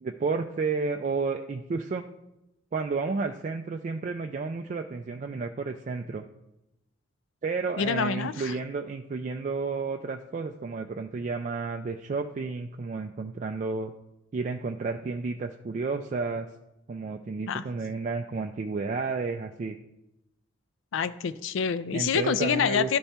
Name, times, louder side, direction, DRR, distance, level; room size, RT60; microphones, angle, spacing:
voice 1, 0.0-2.0 2.7-6.2 7.4-13.9 14.3-16.5 16.9-19.8 21.9-23.0, right 4 dB, 40° right, 4 dB, 0.3 m, -31 dB
voice 2, 7.8-8.5 17.5-17.6 20.9-23.0, left 6 dB, 65° left, 14 dB, 0.4 m, -27 dB
12.5 x 4.2 x 3.4 m, 0.90 s
head